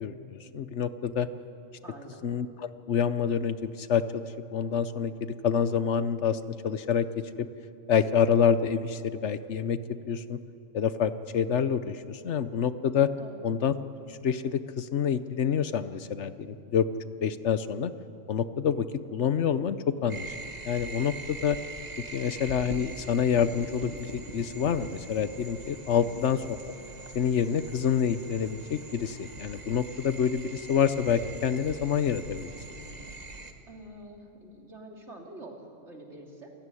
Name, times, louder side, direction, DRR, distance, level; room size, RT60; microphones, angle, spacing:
voice 1, 0.0-1.3 2.2-4.3 4.5-7.5 7.9-9.8 10.1-10.4 10.7-13.1 13.4-13.7 14.2-16.9 17.2-17.9 18.3-20.3 20.7-21.6 22.1-26.6 27.1-32.5, left 7 dB, 70° left, 13 dB, 1.1 m, -27 dB
voice 2, 1.8-2.2 13.2-13.5 25.9-26.2 33.7-36.5, right 1 dB, 60° right, 0 dB, 3.5 m, -46 dB
sound 1, 20.1-33.5, right 3 dB, 35° right, 1.6 m, -43 dB
28.5 x 16.0 x 9.8 m, 2.7 s
omnidirectional pair, 1.3 m